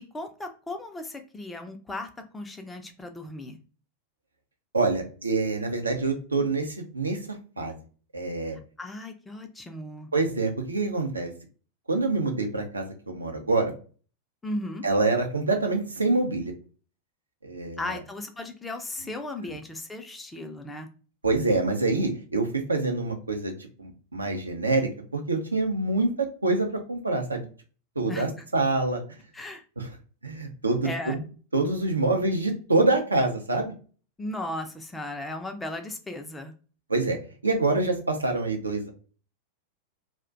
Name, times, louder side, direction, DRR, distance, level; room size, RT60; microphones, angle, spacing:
voice 1, 0.0-3.6 8.8-10.1 14.4-14.8 17.8-20.9 28.1-28.4 29.3-29.6 30.8-31.2 34.2-36.5, left 1 dB, 10° left, 5 dB, 0.4 m, -36 dB
voice 2, 4.7-7.2 7.6-7.7 8.1-8.6 10.1-11.3 11.9-13.7 14.8-16.5 17.4-17.8 21.2-23.5 23.8-27.5 28.0-29.0 29.8-29.9 30.2-31.2 31.5-33.7 36.9-37.2 37.4-38.9, right 3 dB, 80° right, 4 dB, 0.5 m, -26 dB
2.4 x 2.1 x 2.4 m, 0.38 s
figure-of-eight pair, 90°, 0 cm